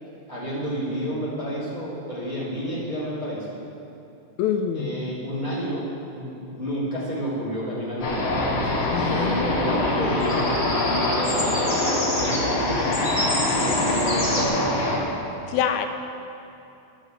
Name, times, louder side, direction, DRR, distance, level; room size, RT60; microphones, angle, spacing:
voice 1, 0.3-3.5 4.7-11.6 11.8-13.0 13.6-14.5, equal, 15° right, -9 dB, 1.7 m, -30 dB
voice 2, 4.4-5.0 8.9-10.0 15.5-15.9, left 8 dB, 80° left, 6 dB, 1.9 m, -26 dB
sound 1, 8.0-15.0, left 2 dB, 65° left, 2.5 m, -24 dB
sound 2, 10.1-14.5, left 1 dB, 15° left, 2.0 m, -30 dB
11.5 x 5.3 x 7.6 m, 2.7 s
omnidirectional pair, 3.3 m